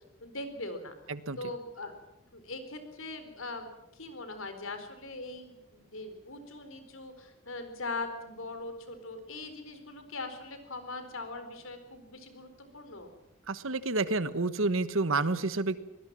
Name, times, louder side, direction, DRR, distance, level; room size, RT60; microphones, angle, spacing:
voice 1, 0.2-0.9 1.4-1.9 2.3-13.1, left 2 dB, 70° left, 8 dB, 4.3 m, -41 dB
voice 2, 13.5-15.8, right 3 dB, 70° right, 14 dB, 1.3 m, -29 dB
23.5 x 19.5 x 7.5 m, 0.91 s
head